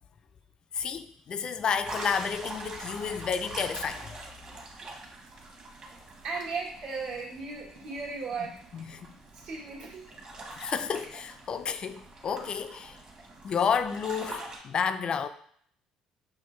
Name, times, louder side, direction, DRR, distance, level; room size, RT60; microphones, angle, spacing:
voice 1, 0.7-4.1 8.7-9.1 10.6-13.0 13.4-15.3, left 6 dB, 45° left, 0.3 m, -31 dB
sound 1, 1.8-14.6, right 2 dB, 40° right, 1.2 m, -44 dB
voice 2, 6.2-8.6 9.3-10.0, right 4 dB, 75° right, 1.4 m, -36 dB
6.2 x 2.2 x 3.1 m
supercardioid pair, 85°, 2 cm